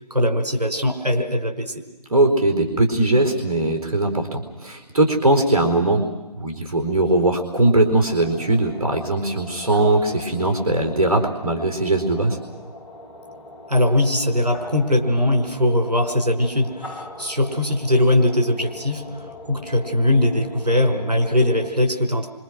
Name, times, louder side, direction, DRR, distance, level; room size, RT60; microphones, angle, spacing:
voice 1, 0.1-1.7 13.7-22.3, left 1 dB, 90° right, 4 dB, 5.0 m, -20 dB
voice 2, 2.1-6.0 6.4-12.4, right 2 dB, 65° right, 4 dB, 4.3 m, -20 dB
sound 1, 8.2-21.7, left 2 dB, 5° left, 3.7 m, -40 dB
27.0 x 26.0 x 6.3 m, 1.1 s
figure-of-eight pair, 145°, 20 cm